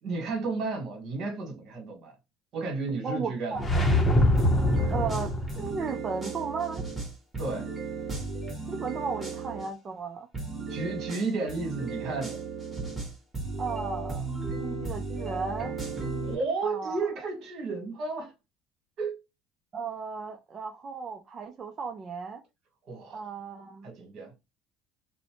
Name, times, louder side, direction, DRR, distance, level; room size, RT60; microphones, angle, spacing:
voice 1, 0.0-2.1 2.5-3.8 7.4-7.7 10.7-12.4 16.2-18.3 19.0-19.2 22.9-23.2 23.8-24.3, right 3 dB, 55° right, 1.4 m, -33 dB
voice 2, 3.0-3.7 4.9-6.8 8.7-10.3 13.6-14.3 14.6-15.7 16.6-17.1 19.7-22.4 23.1-23.9, right 5 dB, 35° right, 0.4 m, -35 dB
sound 1, 3.5-5.8, left 1 dB, 15° left, 0.8 m, -24 dB
sound 2, 4.3-9.7 10.3-16.3, right 4 dB, 15° right, 1.3 m, -35 dB
2.5 x 2.0 x 2.9 m
supercardioid pair, 105°, 0 cm